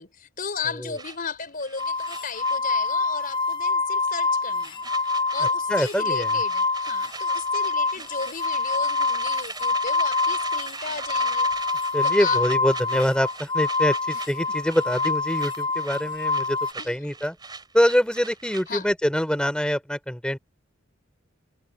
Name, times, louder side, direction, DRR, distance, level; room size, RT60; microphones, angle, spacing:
voice 1, 0.0-4.8 5.3-11.5 12.0-12.4 16.8-17.1 18.7-18.9, left 5 dB, 45° left, 4.6 m, -35 dB
sound 1, 1.0-3.2 3.5-3.7 4.0-18.9, right 4 dB, 20° right, 4.1 m, -39 dB
sound 2, 1.8-16.7, left 3 dB, 25° left, 0.5 m, -26 dB
voice 2, 5.4-6.4 11.9-16.6 16.9-17.4 17.7-20.4, equal, 5° left, 3.4 m, -24 dB
head